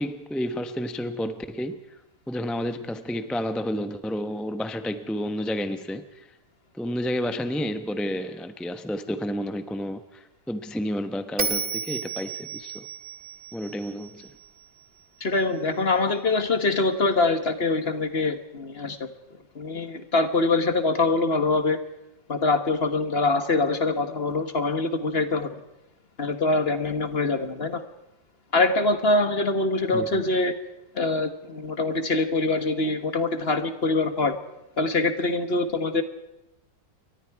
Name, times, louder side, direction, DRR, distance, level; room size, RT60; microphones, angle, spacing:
voice 1, 0.0-1.8 2.3-6.4 6.7-12.9 13.5-14.4 29.9-30.2, equal, ahead, 9 dB, 0.6 m, -31 dB
Bell, 11.4-14.6, right 4 dB, 30° right, 1.7 m, -32 dB
voice 2, 15.2-19.1 19.5-21.8 22.3-25.5 26.2-27.8 28.5-30.5 30.9-34.4 34.8-36.0, left 3 dB, 35° left, 9 dB, 1.4 m, -24 dB
29.0 x 23.5 x 4.8 m, 0.95 s
omnidirectional pair, 1.9 m